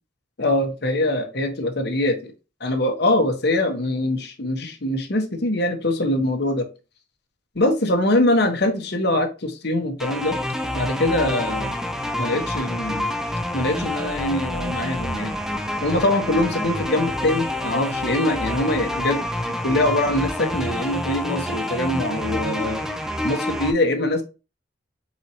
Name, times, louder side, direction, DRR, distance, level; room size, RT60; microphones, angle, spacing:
voice 1, 0.4-2.3 2.6-6.7 7.5-10.4 10.7-11.7 12.2-13.1 13.5-15.4 15.8-19.2 19.6-22.8 23.2-24.2, left 1 dB, 55° left, 1.0 m, -23 dB
sound 1, 10.0-23.7, left 1 dB, ahead, 0.5 m, -28 dB
4.4 x 4.0 x 2.9 m
head